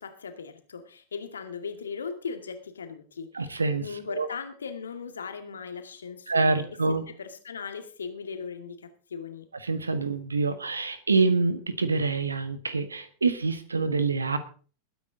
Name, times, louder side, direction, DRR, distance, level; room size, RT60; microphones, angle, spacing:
voice 1, 0.0-9.5, left 5 dB, 70° left, 7 dB, 2.1 m, -38 dB
voice 2, 3.3-4.3 6.3-7.0 9.6-14.4, right 4 dB, 75° right, 11 dB, 1.5 m, -26 dB
21.0 x 9.5 x 3.8 m, 0.39 s
figure-of-eight pair, 90°, 0 cm